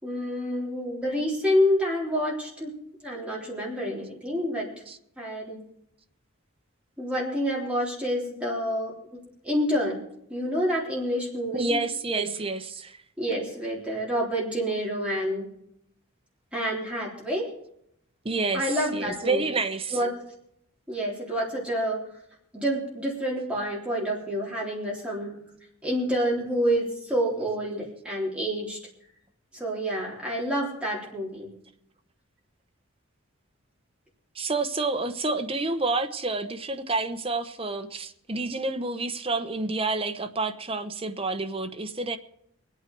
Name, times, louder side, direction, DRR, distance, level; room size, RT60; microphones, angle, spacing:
voice 1, 0.0-2.7 3.0-4.7 5.2-5.6 7.0-8.9 9.4-11.8 12.2-12.3 13.2-15.5 16.5-17.5 18.5-19.4 19.9-20.1 20.9-22.0 22.5-25.4 25.8-28.8 29.5-31.5, equal, 5° right, 3.6 m, -28 dB
voice 2, 11.5-13.0 18.2-20.0 34.3-42.2, right 3 dB, 25° right, 0.9 m, -29 dB
24.0 x 9.1 x 4.6 m
head